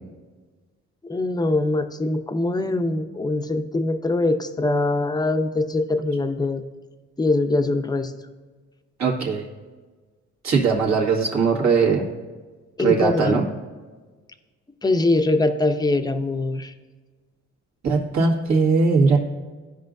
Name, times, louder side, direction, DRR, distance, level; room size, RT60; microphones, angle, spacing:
voice 1, 1.0-6.6 7.2-8.1 12.8-13.4 14.8-16.7, left 2 dB, 15° left, 7 dB, 0.6 m, -23 dB
voice 2, 9.0-9.4 10.4-12.0 12.8-13.5 17.8-19.2, right 4 dB, 65° right, -3 dB, 1.8 m, -19 dB
14.5 x 5.1 x 2.6 m, 1.4 s
cardioid pair, 90°, 30 cm